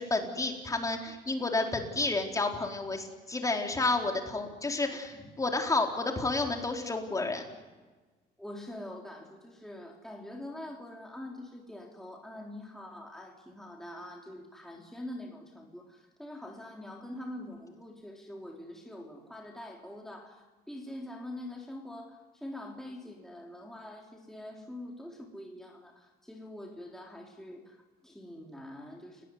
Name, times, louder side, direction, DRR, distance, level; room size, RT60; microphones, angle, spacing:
voice 1, 0.0-7.4, left 3 dB, 20° left, 3 dB, 4.4 m, -30 dB
voice 2, 8.4-29.3, left 1 dB, ahead, 0 dB, 3.8 m, -44 dB
30.0 x 19.0 x 9.7 m, 1.3 s
cardioid pair, 110°, 17 cm